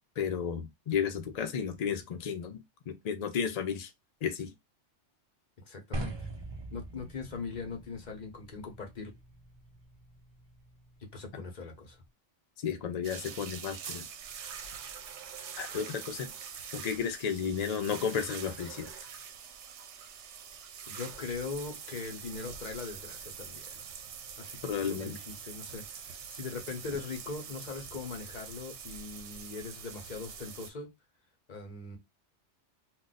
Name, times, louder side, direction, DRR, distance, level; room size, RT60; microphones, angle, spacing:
voice 1, 0.2-3.9 4.2-4.5 12.6-14.0 15.6-16.3 16.7-18.9 24.6-25.2, left 7 dB, 75° left, 0.3 m, -33 dB
voice 2, 5.6-6.3 6.7-9.1 11.1-12.0 20.9-23.8 24.4-30.9 31.5-32.0, left 4 dB, 40° left, 0.8 m, -41 dB
sound 1, 5.9-12.1, right 1 dB, 45° right, 0.3 m, -44 dB
sound 2, 13.0-30.7, right 7 dB, 75° right, 0.8 m, -45 dB
2.4 x 2.2 x 3.9 m
omnidirectional pair, 1.2 m